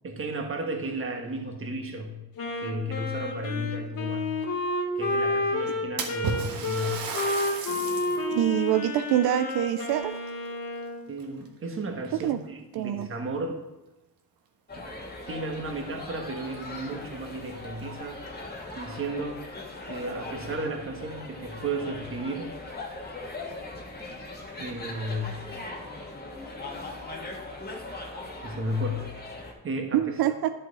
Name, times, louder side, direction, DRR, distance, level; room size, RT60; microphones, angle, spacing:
voice 1, 0.0-2.2 2.6-4.4 4.9-7.1 7.7-8.4 11.1-13.6 14.7-14.9 15.3-18.2 18.7-19.4 19.9-22.5 24.6-25.5 28.4-29.2 29.6-30.1, right 1 dB, 35° right, 3 dB, 1.4 m, -34 dB
Wind instrument woodwind instrument, 2.4-11.0, left 2 dB, 60° left, 1.7 m, -30 dB
Splash splatter, 6.0-8.3 8.8-8.9 9.8-10.8 11.2-11.6 12.4-12.5 13.0-13.1 15.3-15.4 15.7-15.8 16.4-16.5 16.9-17.0 17.7-18.3, right 5 dB, 65° right, 1.4 m, -35 dB
voice 2, 8.3-10.1 12.2-12.4 12.7-13.1 29.9-30.5, right 12 dB, 80° right, 9 dB, 0.5 m, -25 dB
sound 1, 14.7-29.5, left 2 dB, 25° left, 1.6 m, -40 dB
10.5 x 5.8 x 4.1 m, 1.0 s
cardioid pair, 120°, 38 cm